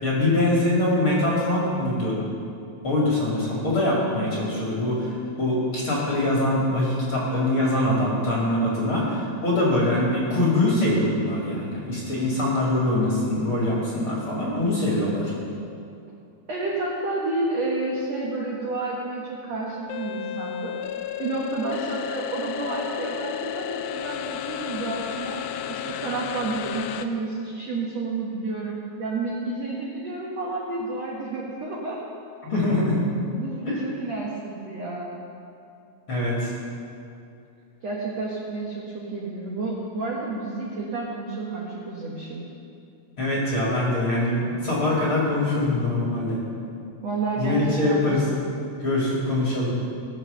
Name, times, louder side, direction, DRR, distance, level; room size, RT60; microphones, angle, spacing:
voice 1, 0.0-2.2 2.8-5.1 5.4-15.3 32.4-33.0 33.7-33.8 36.1-36.5 43.2-46.4 47.4-48.2 48.8-49.8, left 1 dB, 40° left, -5 dB, 2.2 m, -23 dB
voice 2, 16.5-20.7 21.2-25.4 25.7-32.0 33.4-35.1 37.8-42.4 47.0-48.1, right 3 dB, 80° right, -3 dB, 1.5 m, -30 dB
sound 1, 19.9-27.1, left 11 dB, 85° left, 2.5 m, -33 dB
18.5 x 7.1 x 6.7 m, 2.6 s
omnidirectional pair, 5.3 m